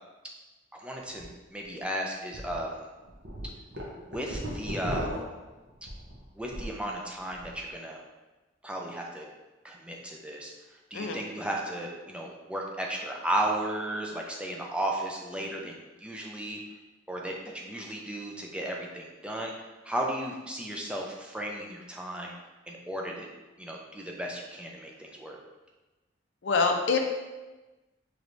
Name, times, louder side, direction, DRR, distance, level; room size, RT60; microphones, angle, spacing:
voice 1, 0.7-2.9 4.1-5.1 5.8-5.9 6.3-8.0 8.6-9.3 9.6-10.5 10.9-16.6 17.1-19.5 19.8-22.3 22.7-23.3 23.6-25.4, right 1 dB, 5° right, -1 dB, 0.4 m, -34 dB
sound 1, 1.1-1.2 1.7-1.8 2.3-2.5 3.0-6.8 7.2-7.6, equal, 60° right, 0.8 m, -37 dB
voice 2, 26.4-27.0, left 4 dB, 80° left, 3 dB, 0.5 m, -25 dB
4.6 x 3.1 x 2.6 m, 1.1 s
head